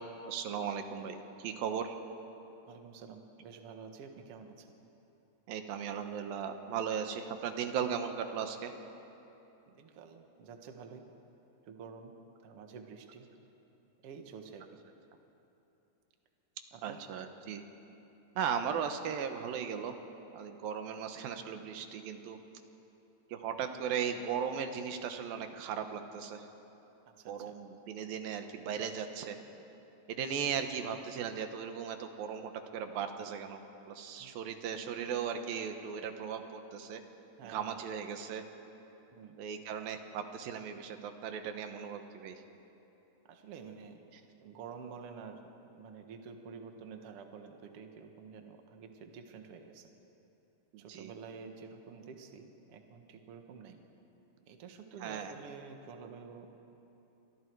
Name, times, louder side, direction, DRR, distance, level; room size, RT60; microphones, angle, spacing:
voice 1, 0.2-2.0 5.5-8.7 16.8-17.6 18.4-19.9 20.3-22.4 23.3-26.5 27.3-29.4 30.1-33.6 33.9-37.0 37.4-38.4 39.4-42.4 50.7-51.1 55.0-55.3, right 7 dB, 85° right, 6 dB, 3.0 m, -37 dB
voice 2, 2.7-4.7 9.7-11.0 11.7-12.1 12.4-13.3 14.0-14.8 16.7-17.0 21.2-21.3 27.1-27.6 34.2-34.6 37.4-37.8 39.1-39.4 43.3-44.0 44.4-45.4 45.7-49.9 50.8-53.8 54.5-56.5, right 6 dB, 50° right, 4 dB, 2.0 m, -49 dB
30.0 x 26.0 x 4.7 m, 3.0 s
omnidirectional pair, 4.0 m